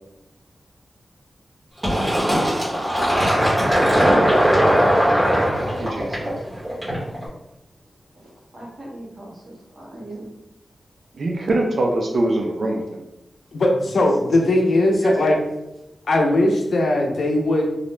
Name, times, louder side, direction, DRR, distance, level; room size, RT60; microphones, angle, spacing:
Fill (with liquid), 1.8-7.2, equal, 20° right, 1.1 m, -19 dB
voice 1, 5.8-6.4 11.2-13.0, right 2 dB, 65° right, 0 dB, 0.4 m, -23 dB
voice 2, 8.1-10.3 15.0-15.4, equal, 45° right, -5 dB, 1.0 m, -36 dB
voice 3, 13.5-15.4 16.1-17.6, left 1 dB, 80° left, 1 dB, 0.5 m, -19 dB
2.4 x 2.1 x 3.1 m, 0.91 s
wide cardioid pair, 135°, 0 cm